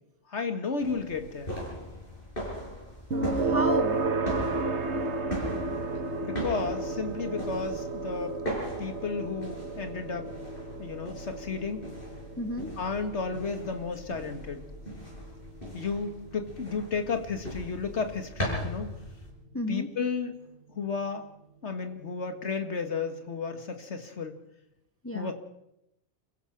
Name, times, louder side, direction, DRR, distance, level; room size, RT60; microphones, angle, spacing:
voice 1, 0.3-1.6 6.2-8.4 8.8-10.3 10.8-11.9 12.8-14.6 15.7-18.9 19.7-20.5 20.8-21.3 21.6-24.4 25.1-25.3, left 5 dB, 90° left, 7 dB, 2.1 m, -33 dB
sound 1, 0.8-19.3, equal, 50° left, 7.8 m, -39 dB
voice 2, 3.1-4.0 12.4-12.7 19.5-19.9 25.0-25.3, equal, 15° left, 7 dB, 0.8 m, -32 dB
sound 2, 3.1-18.0, right 3 dB, 80° right, 1.6 m, -33 dB
28.5 x 15.5 x 6.0 m, 0.83 s
omnidirectional pair, 1.1 m